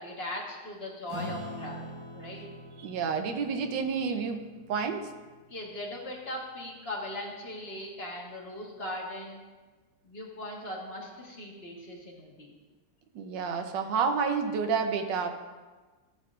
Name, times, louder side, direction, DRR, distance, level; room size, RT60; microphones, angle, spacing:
voice 1, 0.0-2.5 5.5-9.4 10.0-12.5, left 1 dB, 35° left, -2 dB, 1.4 m, -39 dB
Acoustic guitar / Strum, 1.1-5.9, equal, 60° right, 1.9 m, -44 dB
voice 2, 2.8-4.4 4.7-5.0 13.1-15.3, right 5 dB, 80° right, 6 dB, 1.5 m, -29 dB
13.0 x 7.4 x 2.5 m, 1.3 s
omnidirectional pair, 1.9 m